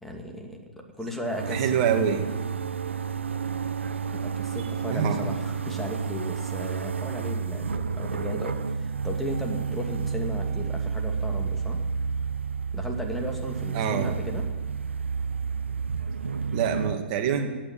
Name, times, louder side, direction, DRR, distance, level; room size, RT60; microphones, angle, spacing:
voice 1, 0.0-1.8 4.1-11.8 12.7-14.5, left 1 dB, 5° left, 2 dB, 2.5 m, -35 dB
sound 1, 1.2-17.0, right 6 dB, 75° right, 0.7 m, -30 dB
voice 2, 1.5-2.2 4.9-5.3 13.7-14.1 16.5-17.5, right 7 dB, 40° right, 5 dB, 2.2 m, -25 dB
17.0 x 9.4 x 7.6 m, 1.3 s
figure-of-eight pair, 120°, 7 cm